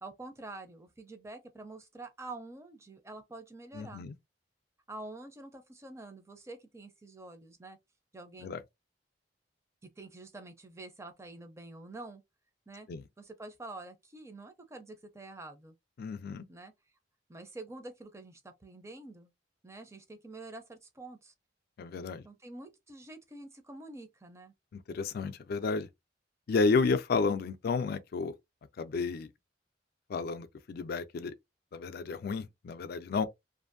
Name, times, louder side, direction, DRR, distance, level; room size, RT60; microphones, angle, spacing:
voice 1, 0.0-4.0 4.9-7.8 8.1-8.6 10.0-12.2 12.7-12.9 13.2-15.7 16.5-16.7 17.3-19.3 19.6-21.3 22.2-24.5, right 2 dB, 15° right, 0.5 m, -47 dB
voice 2, 3.7-4.1 8.4-8.6 12.9-13.0 16.0-16.4 21.8-22.2 24.7-25.9 26.5-28.3 28.8-29.3 30.1-31.3 31.7-33.3, left 4 dB, 55° left, 0.4 m, -31 dB
2.6 x 2.5 x 2.5 m
head